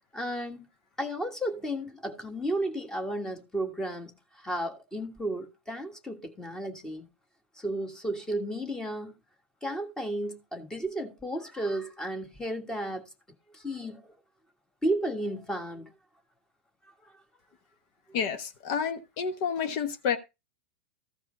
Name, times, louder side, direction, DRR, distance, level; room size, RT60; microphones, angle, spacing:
voice 1, 0.1-0.7 1.0-7.1 7.6-9.1 9.6-13.1 13.5-14.1 14.8-15.9 16.8-17.1, right 1 dB, 10° left, 1.6 m, -33 dB
voice 2, 18.1-20.2, left 7 dB, 50° left, 1.1 m, -30 dB
14.0 x 4.8 x 3.9 m
figure-of-eight pair, 90°, 6 cm